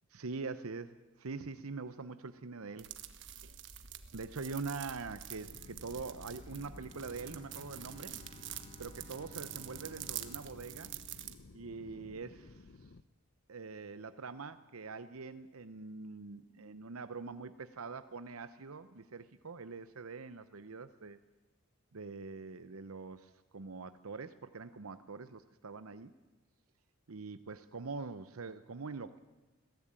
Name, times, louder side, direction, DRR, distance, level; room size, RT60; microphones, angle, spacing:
voice 1, 0.1-0.9 1.2-2.9 4.1-8.2 8.8-11.0 11.5-12.9 13.5-21.2 21.9-26.1 27.1-29.2, right 4 dB, 85° right, 12 dB, 0.8 m, -44 dB
sound 1, 2.8-11.3, right 10 dB, 55° right, 1.3 m, -47 dB
sound 2, 5.4-13.0, left 3 dB, 55° left, 0.6 m, -56 dB
Bowed string instrument, 6.4-12.4, left 2 dB, 30° left, 1.4 m, -58 dB
21.0 x 17.0 x 8.9 m, 1.2 s
head